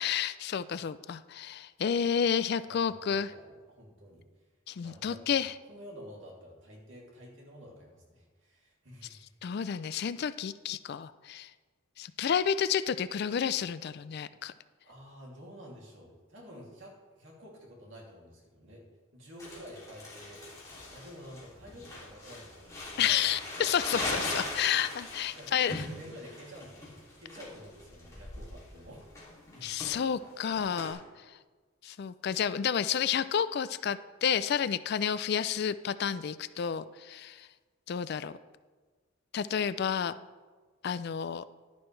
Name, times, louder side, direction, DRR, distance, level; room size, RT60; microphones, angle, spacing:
voice 1, 0.0-3.3 4.7-5.5 9.4-11.5 12.0-14.5 23.0-25.8 29.6-31.0 31.8-37.5 37.9-38.3 39.3-40.1 40.8-41.4, left 8 dB, 50° left, 15 dB, 0.3 m, -30 dB
voice 2, 2.6-4.2 4.8-5.4 5.7-9.3 14.8-18.8 19.1-20.4 20.9-23.7 25.4-29.9, equal, 65° right, -2 dB, 2.6 m, -50 dB
Crumpling crinkling, 19.4-30.9, left 2 dB, 15° left, 2.7 m, -40 dB
11.0 x 10.5 x 3.2 m, 1.4 s
head